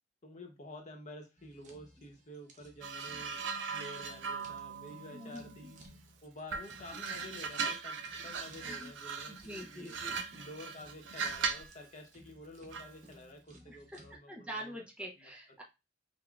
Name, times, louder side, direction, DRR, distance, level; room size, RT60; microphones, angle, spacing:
voice 1, 0.2-5.8 6.2-10.0 10.4-14.8 15.2-15.3, left 1 dB, 40° left, 3 dB, 0.8 m, -50 dB
sound 1, 1.4-14.2, right 1 dB, 40° right, 0.8 m, -60 dB
sound 2, 2.8-6.0 6.5-11.8 12.7-13.0, right 5 dB, 75° right, 0.5 m, -39 dB
voice 2, 5.1-5.5 8.7-8.9 9.3-10.3 13.7-13.8 14.3-15.6, equal, 5° right, -2 dB, 0.5 m, -45 dB
5.6 x 2.1 x 2.3 m, 0.26 s
head